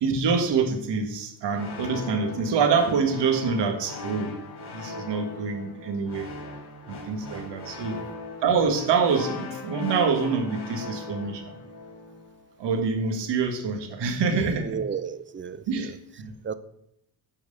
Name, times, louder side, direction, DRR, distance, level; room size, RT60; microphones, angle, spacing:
voice 1, 0.0-4.4 4.7-6.3 6.9-8.0 8.4-11.5 12.6-14.8 15.7-16.3, right 5 dB, 75° right, 5 dB, 1.8 m, -26 dB
sound 1, 1.5-12.4, left 2 dB, 65° left, 2.6 m, -39 dB
voice 2, 7.7-8.1 14.3-16.0 16.4-16.5, right 7 dB, 30° right, 14 dB, 0.7 m, -34 dB
8.9 x 4.8 x 6.8 m, 0.78 s
cardioid pair, 95°, 42 cm